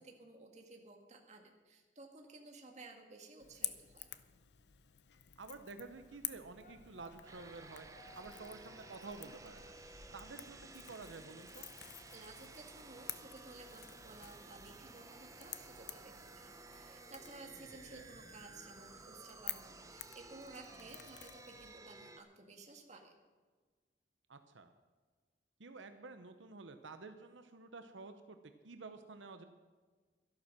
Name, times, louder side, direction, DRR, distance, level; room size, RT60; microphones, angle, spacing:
voice 1, 0.0-4.1 12.1-23.1, right 2 dB, 40° right, 3 dB, 1.9 m, -55 dB
Crackle / Crack, 3.4-21.7, left 13 dB, 65° left, 0.7 m, -51 dB
voice 2, 5.4-7.9 8.2-9.7 10.1-11.7 17.9-18.0 24.3-24.7 25.6-28.4 28.6-29.4, right 3 dB, 90° right, 8 dB, 0.9 m, -51 dB
sound 1, 5.7-10.7, left 2 dB, 40° left, 1.2 m, -62 dB
sound 2, 7.3-22.2, right 3 dB, 20° right, 0.8 m, -55 dB
12.5 x 11.5 x 6.1 m, 1.4 s
head